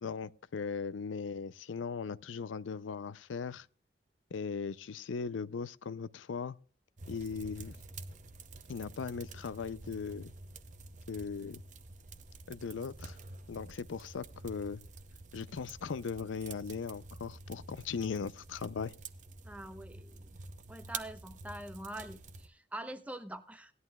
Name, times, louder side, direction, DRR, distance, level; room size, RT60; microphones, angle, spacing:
voice 1, 0.0-3.7 4.3-6.6 7.1-7.8 8.7-10.3 11.1-11.6 12.5-13.2 13.5-14.8 15.3-18.9, left 5 dB, 90° left, 0.5 m, -38 dB
sound 1, 7.0-22.5, right 3 dB, 40° right, 0.7 m, -49 dB
voice 2, 19.4-20.3 20.7-23.7, right 1 dB, 10° right, 0.8 m, -44 dB
18.5 x 11.0 x 2.3 m
head